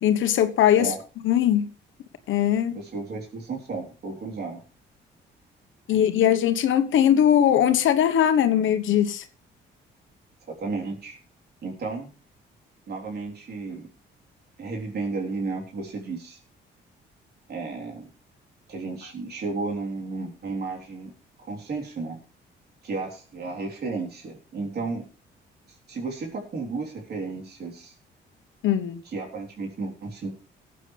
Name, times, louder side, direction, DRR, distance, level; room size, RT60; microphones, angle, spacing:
voice 1, 0.0-0.9 1.2-1.6 2.3-2.8 5.9-9.2 28.6-29.0, left 10 dB, 75° left, 1.2 m, -20 dB
voice 2, 2.7-4.6 5.9-6.0 10.5-11.2 11.6-12.1 12.9-13.9 14.6-16.4 17.5-18.1 18.7-21.1 21.4-22.2 22.8-25.0 25.9-27.9 29.0-30.3, right 3 dB, 55° right, 3.8 m, -33 dB
19.0 x 8.4 x 3.4 m
cardioid pair, 90°, 20 cm